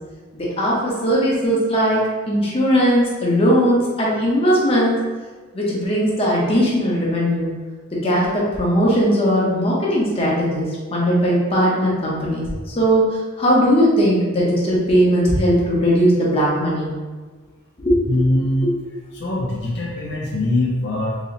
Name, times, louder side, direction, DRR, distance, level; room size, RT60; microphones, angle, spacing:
voice 1, 0.3-5.0 5.5-7.5 7.9-13.0 13.4-16.9 17.8-18.0 18.6-18.7, equal, 30° left, -5 dB, 0.9 m, -18 dB
voice 2, 18.1-18.7 19.1-21.3, left 1 dB, 60° left, -4 dB, 0.5 m, -22 dB
2.9 x 2.7 x 3.9 m, 1.4 s
head